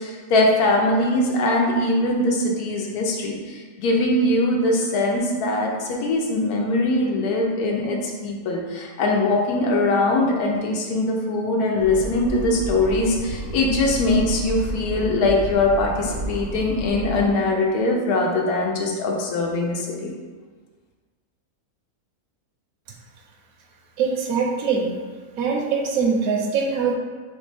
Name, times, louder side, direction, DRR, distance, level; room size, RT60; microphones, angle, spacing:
voice 1, 0.0-20.1, left 2 dB, 80° left, 0 dB, 1.2 m, -22 dB
sound 1, 11.8-17.3, right 2 dB, 55° right, 0.7 m, -31 dB
voice 2, 24.0-24.9 25.4-27.0, right 5 dB, 75° right, 1 dB, 1.0 m, -22 dB
4.2 x 3.1 x 3.3 m, 1.5 s
omnidirectional pair, 1.6 m